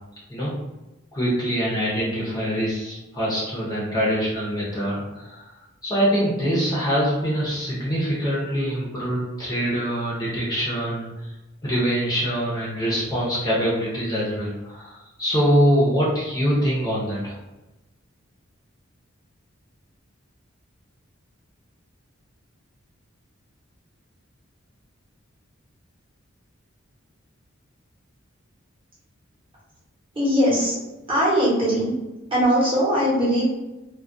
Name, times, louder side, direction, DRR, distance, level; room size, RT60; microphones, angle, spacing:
voice 1, 1.1-5.4 5.8-11.1 11.6-17.3, equal, 20° left, -7 dB, 0.6 m, -24 dB
voice 2, 30.1-30.8 31.1-31.9 32.3-33.4, equal, 25° right, -7 dB, 0.8 m, -20 dB
2.3 x 2.1 x 2.5 m, 1.0 s
head